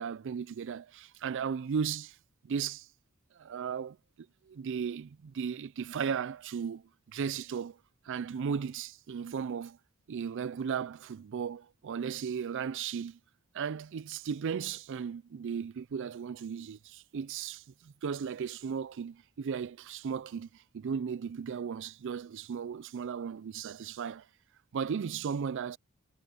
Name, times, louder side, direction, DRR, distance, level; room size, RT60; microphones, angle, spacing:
voice 1, 0.0-2.2 2.4-2.9 3.3-7.8 8.0-9.8 10.1-13.2 13.5-24.3 24.7-25.8, right 6 dB, 60° right, 0.4 m, -36 dB
head